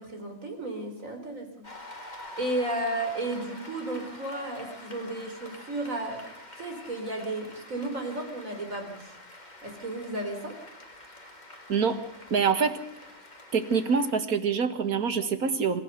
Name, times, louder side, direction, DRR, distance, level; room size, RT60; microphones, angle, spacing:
voice 1, 0.0-1.6 2.0-6.3 6.5-9.2 9.6-10.6, right 1 dB, 65° right, 4 dB, 4.5 m, -33 dB
Cheering / Applause, 1.6-14.1, left 2 dB, 30° left, 3.0 m, -46 dB
voice 2, 11.7-12.0 12.3-12.8 13.5-15.8, right 6 dB, 85° right, 9 dB, 2.1 m, -25 dB
26.5 x 15.0 x 6.8 m, 0.88 s
omnidirectional pair, 1.5 m